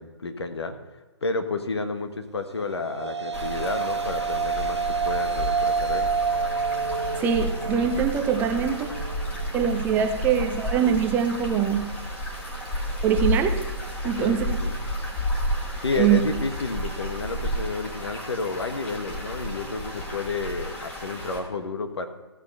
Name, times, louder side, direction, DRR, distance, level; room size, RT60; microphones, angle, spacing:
voice 1, 0.0-6.1 14.2-14.8 15.8-22.1, left 3 dB, 70° left, 7 dB, 1.4 m, -31 dB
sound 1, 2.6-11.1, right 5 dB, 80° right, 0.8 m, -29 dB
sound 2, 3.3-21.4, equal, 10° left, 1.6 m, -32 dB
voice 2, 7.2-8.9 9.5-11.9 13.0-13.6 14.0-14.6 16.0-16.2, right 8 dB, 15° right, 6 dB, 0.6 m, -23 dB
14.5 x 6.7 x 5.6 m, 1.2 s
figure-of-eight pair, 140°, 14 cm